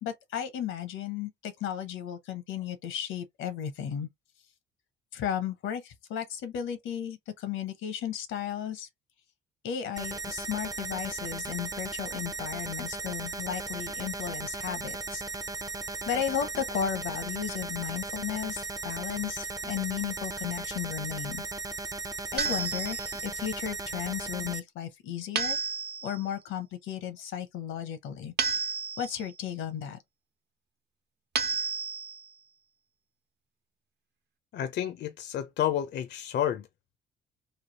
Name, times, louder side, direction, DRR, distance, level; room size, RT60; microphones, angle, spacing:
voice 1, 0.0-4.1 5.1-8.9 9.6-15.2 16.1-21.4 22.3-25.6 26.0-28.3 29.0-30.0, left 9 dB, 85° left, 0.8 m, -34 dB
sound 1, 10.0-24.6, right 3 dB, 20° right, 0.5 m, -36 dB
sound 2, 22.4-23.3 25.4-26.2 28.4-29.3 31.3-32.3, right 6 dB, 60° right, 0.9 m, -31 dB
voice 2, 34.5-36.7, left 10 dB, 60° left, 0.5 m, -30 dB
3.2 x 2.3 x 2.8 m
cardioid pair, 90°, 20 cm